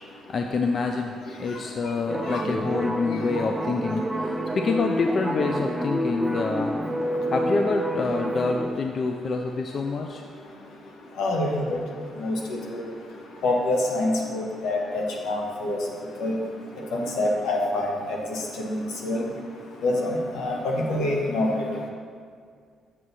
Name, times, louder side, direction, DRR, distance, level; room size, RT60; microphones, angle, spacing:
voice 1, 0.3-1.1 1.4-6.7 7.3-10.2, left 4 dB, 50° left, 4 dB, 0.4 m, -27 dB
sound 1, 2.1-8.7, right 1 dB, 10° right, 0.6 m, -28 dB
voice 2, 11.2-11.8 12.2-12.4 12.7-12.8 13.4-15.8 16.2-16.3 16.9-18.4 18.6-19.2 19.8-20.1 20.3-21.5, left 2 dB, 85° left, 0 dB, 1.2 m, -26 dB
7.5 x 6.1 x 4.1 m, 2.1 s
cardioid pair, 90°, 0 cm